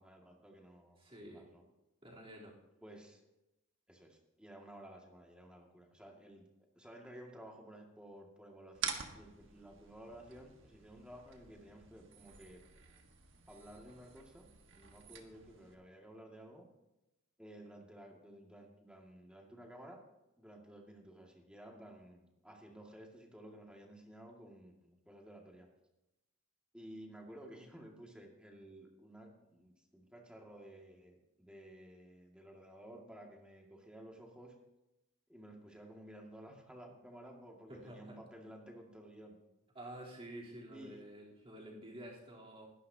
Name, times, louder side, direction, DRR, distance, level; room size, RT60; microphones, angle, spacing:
voice 1, 0.0-1.0 1.3-1.7 2.8-3.2 3.9-6.5 6.7-12.6 13.5-16.7 17.4-20.0 20.4-25.7 26.7-34.5 35.3-39.4 40.7-41.0, right 1 dB, 5° right, 0 dB, 2.0 m, -54 dB
voice 2, 1.0-1.4 2.0-2.5 37.7-38.2 39.7-42.7, right 1 dB, 25° right, -5 dB, 3.4 m, -50 dB
sound 1, 8.7-15.7, right 7 dB, 55° right, 1.5 m, -48 dB
21.0 x 11.5 x 2.8 m, 0.93 s
head